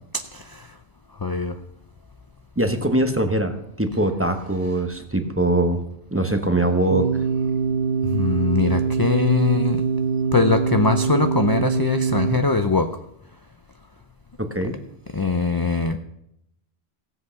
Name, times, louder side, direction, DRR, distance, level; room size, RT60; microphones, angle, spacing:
voice 1, 1.2-1.5 8.1-9.8 10.3-13.0 15.1-16.0, left 4 dB, 30° left, 7 dB, 0.5 m, -21 dB
voice 2, 2.6-5.8 6.1-7.1 14.4-14.8, right 1 dB, 15° right, 6 dB, 1.0 m, -22 dB
sound 1, 6.9-12.4, right 5 dB, 65° right, 1.1 m, -23 dB
16.5 x 7.9 x 5.8 m, 0.79 s
omnidirectional pair, 1.1 m